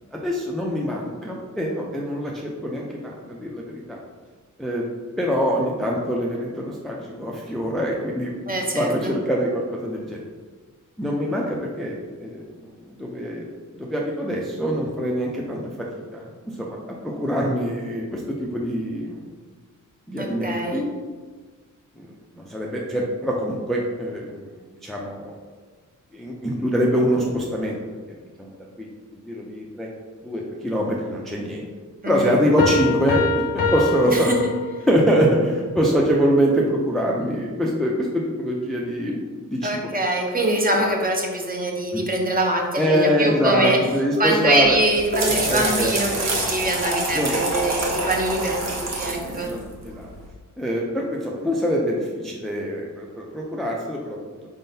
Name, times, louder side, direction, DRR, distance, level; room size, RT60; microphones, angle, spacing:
voice 1, 0.1-4.0 4.6-4.8 5.2-10.2 11.0-11.9 12.2-12.4 12.9-13.5 13.8-15.9 16.1-16.3 16.6-16.8 17.0-19.2 20.1-20.9 22.0-24.5 24.8-25.4 26.1-27.8 28.4-28.9 29.3-29.9 30.2-31.7 32.1-34.3 34.9-39.9 41.9-42.0 42.8-44.8 45.5-46.2 47.1-47.4 48.0-48.1 49.5-50.1 50.6-54.5, equal, ahead, -3 dB, 0.4 m, -24 dB
voice 2, 8.5-9.1 20.2-20.8 32.0-32.4 34.0-34.4 39.6-43.8 44.2-49.5, right 1 dB, 25° right, 0 dB, 0.7 m, -24 dB
sound 1, 32.6-35.1, left 3 dB, 90° left, 0.7 m, -24 dB
sound 2, 44.6-50.2, right 2 dB, 55° right, 0.9 m, -27 dB
4.3 x 3.7 x 2.7 m, 1.5 s
wide cardioid pair, 115°, 32 cm